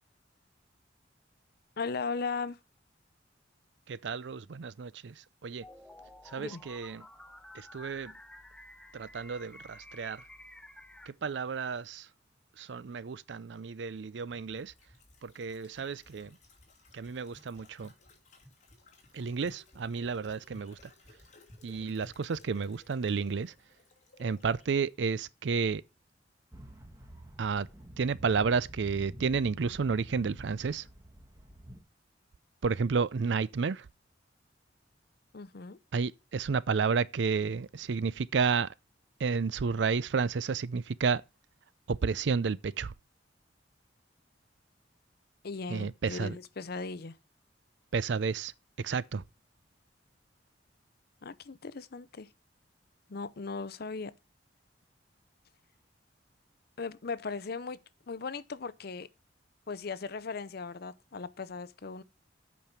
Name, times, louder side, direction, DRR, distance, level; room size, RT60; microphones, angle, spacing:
voice 1, 1.8-2.6 6.4-6.6 35.3-35.8 45.4-47.2 51.2-52.3 53.1-54.1 56.8-57.8 58.1-59.1 59.7-62.0, left 4 dB, 55° left, 0.6 m, -37 dB
voice 2, 3.9-5.6 6.2-7.1 7.5-8.1 8.9-10.2 11.1-12.1 12.6-14.7 15.2-16.4 16.9-17.9 19.1-20.9 21.6-23.5 24.2-25.8 27.4-27.7 28.0-30.9 32.6-33.9 35.9-38.7 39.2-41.2 41.9-42.9 45.7-46.4 47.9-48.5 48.8-49.2, right 5 dB, 70° right, 0.5 m, -31 dB
sound 1, 5.6-11.1, left 1 dB, 5° left, 0.7 m, -51 dB
sound 2, 14.3-24.7 24.9-25.0, left 1 dB, 40° left, 2.7 m, -57 dB
sound 3, 26.5-31.8, right 1 dB, 15° right, 1.5 m, -49 dB
8.5 x 5.4 x 5.8 m
head